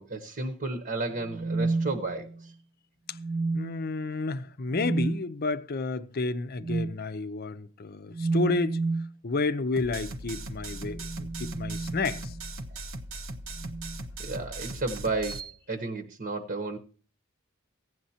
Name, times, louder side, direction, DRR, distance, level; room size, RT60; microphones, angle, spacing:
voice 1, 0.0-2.5 12.7-12.8 14.2-16.8, right 3 dB, 45° right, 1.0 m, -33 dB
sound 1, 1.2-2.5 3.1-3.9 4.7-5.2 6.6-7.0 8.1-9.1 10.6-12.5 13.6-14.0 15.2-15.5, right 3 dB, 20° right, 0.4 m, -31 dB
voice 2, 3.5-8.8 9.2-12.3, left 3 dB, 45° left, 0.6 m, -31 dB
sound 2, 9.8-15.4, right 2 dB, 75° right, 1.0 m, -39 dB
16.0 x 10.5 x 2.8 m
head